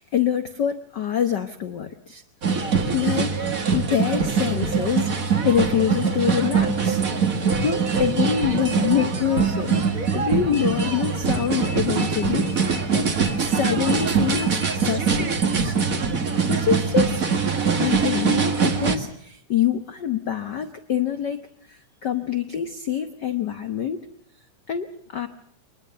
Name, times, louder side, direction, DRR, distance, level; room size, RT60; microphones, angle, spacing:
voice 1, 0.0-2.2 2.5-3.4 3.7-7.0 7.6-13.1 13.4-15.8 16.5-17.2 17.7-24.0 24.7-25.3, left 9 dB, 90° left, 8 dB, 0.9 m, -26 dB
sound 1, 2.4-19.0, right 5 dB, 35° right, 1.5 m, -23 dB
24.0 x 20.5 x 6.7 m, 0.65 s
omnidirectional pair, 3.6 m